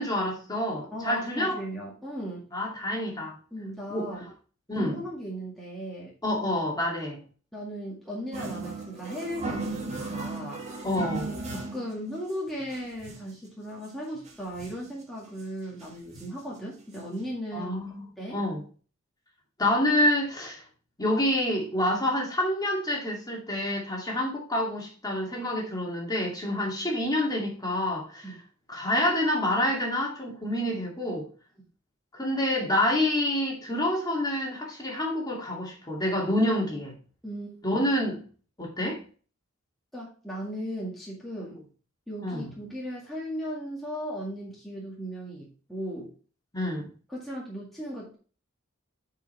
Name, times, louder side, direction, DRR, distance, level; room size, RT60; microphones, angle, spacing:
voice 1, 0.0-1.6 2.5-3.3 3.9-4.1 4.7-5.0 6.2-7.2 10.8-11.3 17.5-18.6 19.6-20.6 21.0-28.3 28.7-31.3 32.1-37.0 37.6-38.2 38.6-39.0 42.2-42.5 46.5-46.9, left 1 dB, 20° left, 2.4 m, -27 dB
voice 2, 0.9-2.5 3.5-4.3 4.8-6.1 7.5-10.6 11.4-17.8 18.2-18.4 28.2-28.3 37.2-37.5 39.9-41.6 42.1-46.1 47.1-48.2, equal, ahead, 2.0 m, -37 dB
sound 1, 8.3-11.9 12.3-12.4 12.6-13.4 13.8-13.9 14.1-14.9 15.4-15.5 15.8-16.5 16.9-17.0 17.2-17.3, right 3 dB, 35° right, 1.8 m, -36 dB
9.1 x 4.9 x 3.4 m
head